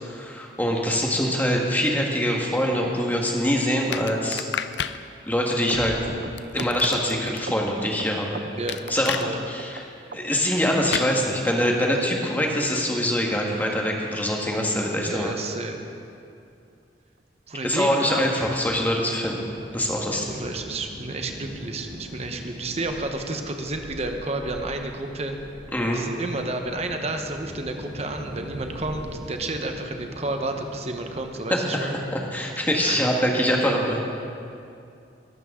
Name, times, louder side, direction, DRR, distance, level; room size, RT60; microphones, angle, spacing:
voice 1, 0.0-4.4 5.2-6.0 6.5-8.4 8.9-9.2 9.5-9.8 10.1-15.3 17.6-19.4 19.7-20.3 25.7-26.0 31.7-34.0, equal, 10° left, -1 dB, 1.6 m, -24 dB
sound 1, 3.9-5.0 6.4-7.4 8.7-9.3 10.9-11.1, left 8 dB, 70° left, 0.5 m, -30 dB
sound 2, 5.7-8.9 9.2-9.8 10.1-10.7 11.0-11.1 11.3-11.6 11.9-12.0 12.2-12.4 12.8-12.9 13.1-13.3 13.6-13.7 14.0-14.2 14.5-14.6 14.9-15.1 15.4-15.5, right 2 dB, 60° right, 0.8 m, -38 dB
voice 2, 15.0-15.8 17.5-18.3 20.1-25.4 25.9-32.0 32.8-33.0, right 2 dB, 35° right, 4 dB, 1.1 m, -31 dB
sound 3, 18.5-31.3, equal, 90° right, 2.9 m, -42 dB
22.0 x 12.0 x 3.8 m, 2.5 s
head